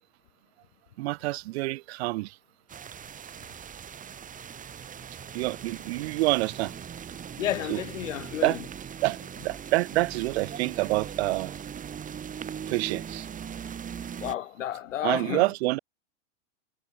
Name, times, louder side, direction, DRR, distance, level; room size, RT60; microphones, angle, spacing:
voice 1, 1.0-2.4 2.8-2.9 5.3-6.7 7.7-7.8 8.4-8.6 9.0-11.6 12.7-13.3 15.0-15.8, right 21 dB, 55° right, 2.9 m, -27 dB
sound 1, 2.7-14.3, right 8 dB, 20° right, 6.3 m, -40 dB
voice 2, 7.4-8.6 14.2-15.5, left 11 dB, 75° left, 5.0 m, -31 dB
hypercardioid pair, 125°, 37 cm